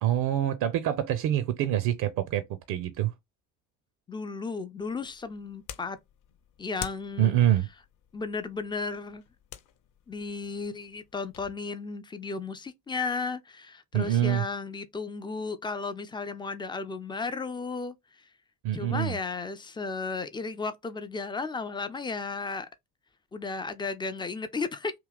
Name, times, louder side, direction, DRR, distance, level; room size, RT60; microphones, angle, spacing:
voice 1, 0.0-3.1 7.2-7.7 13.9-14.4 18.6-19.2, right 12 dB, 45° right, 0.6 m, -26 dB
voice 2, 4.1-6.0 6.6-7.4 8.1-9.2 10.1-17.9 18.7-22.7 23.3-24.9, left 4 dB, 10° left, 0.3 m, -34 dB
sound 1, 4.8-11.5, left 10 dB, 40° left, 0.7 m, -47 dB
3.1 x 2.8 x 3.7 m
figure-of-eight pair, 50°, 47 cm